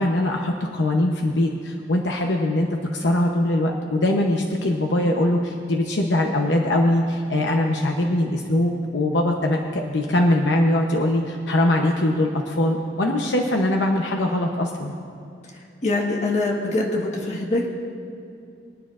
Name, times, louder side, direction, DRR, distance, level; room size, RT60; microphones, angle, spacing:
voice 1, 0.0-2.7 2.9-14.9, left 1 dB, 75° left, 1 dB, 0.9 m, -22 dB
voice 2, 15.8-17.7, left 2 dB, 40° left, -1 dB, 1.6 m, -23 dB
24.0 x 9.4 x 2.5 m, 2.6 s
head